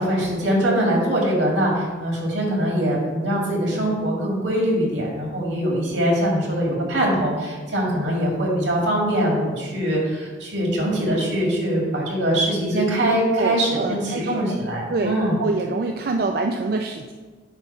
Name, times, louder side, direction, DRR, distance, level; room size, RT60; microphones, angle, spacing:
voice 1, 0.0-15.4, right 1 dB, 80° right, -3 dB, 2.2 m, -22 dB
voice 2, 13.4-14.6 14.9-17.1, right 3 dB, 55° right, 3 dB, 0.4 m, -26 dB
9.0 x 3.1 x 5.6 m, 1.4 s
head